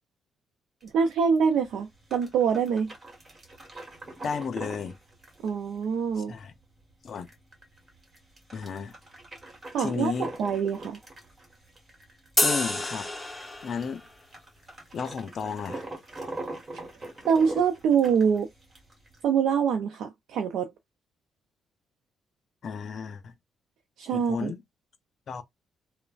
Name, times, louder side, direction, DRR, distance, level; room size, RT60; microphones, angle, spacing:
sound 1, 0.8-19.2, right 2 dB, 30° right, 1.3 m, -43 dB
voice 1, 0.9-2.9 5.4-6.3 9.7-10.1 10.4-11.0 17.3-18.5 19.2-20.7 24.0-24.5, right 6 dB, 80° right, 0.5 m, -25 dB
voice 2, 4.2-5.0 6.3-6.5 7.0-7.3 8.5-9.0 9.8-10.3 12.4-13.1 13.6-14.0 14.9-15.8 22.6-23.3 24.1-24.6 25.3-25.4, left 6 dB, 55° left, 0.6 m, -33 dB
sound 2, 12.4-14.0, left 2 dB, 10° left, 1.0 m, -28 dB
3.1 x 2.1 x 2.4 m
cardioid pair, 90°, 0 cm